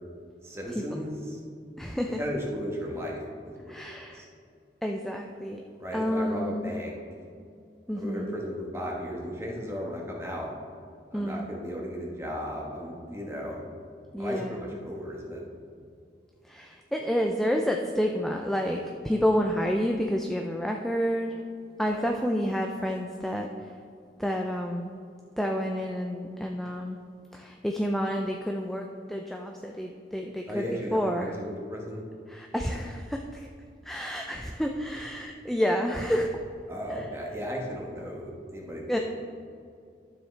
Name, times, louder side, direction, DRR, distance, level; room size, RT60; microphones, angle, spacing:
voice 1, 0.4-1.4 2.2-4.3 5.8-6.9 7.9-10.5 11.1-13.6 14.2-15.4 30.5-32.0 36.7-39.0, equal, 15° right, -2 dB, 1.3 m, -35 dB
voice 2, 1.8-2.2 3.7-4.2 4.8-5.6 5.9-6.7 7.9-8.4 11.1-11.5 14.1-14.8 16.4-21.4 21.8-23.8 24.2-24.9 25.4-27.0 27.3-31.5 32.3-33.5 33.8-36.3 36.9-37.1 38.9-39.0, equal, ahead, 2 dB, 0.4 m, -29 dB
12.0 x 7.2 x 3.3 m, 2.4 s
head